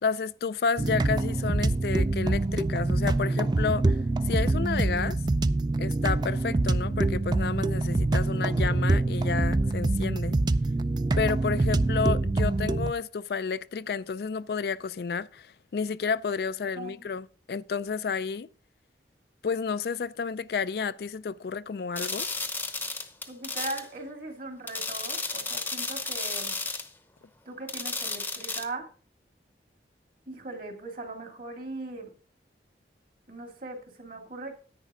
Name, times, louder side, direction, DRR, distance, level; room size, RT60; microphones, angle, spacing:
voice 1, 0.0-5.2 5.8-10.4 11.2-18.5 19.4-22.3, left 5 dB, 65° left, 0.4 m, -31 dB
sound 1, 0.8-12.9, right 2 dB, 25° right, 0.4 m, -25 dB
voice 2, 16.8-17.1 23.3-26.6 27.5-28.9 30.3-32.1 33.3-34.5, right 2 dB, 50° right, 2.3 m, -39 dB
sound 2, 22.0-23.9 24.7-26.9 27.7-28.6, left 3 dB, 10° left, 0.8 m, -33 dB
10.5 x 9.1 x 3.7 m
head